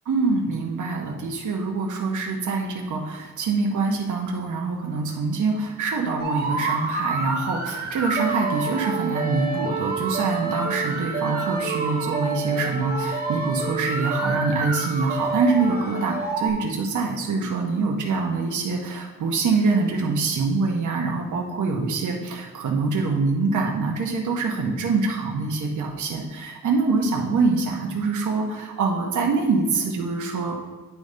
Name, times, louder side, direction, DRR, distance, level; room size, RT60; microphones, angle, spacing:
voice 1, 0.1-30.6, right 4 dB, 80° right, 0 dB, 0.9 m, -25 dB
sound 1, 6.2-16.5, right 4 dB, 30° right, 1.0 m, -28 dB
9.2 x 3.2 x 5.1 m, 1.3 s
wide cardioid pair, 145°, 30 cm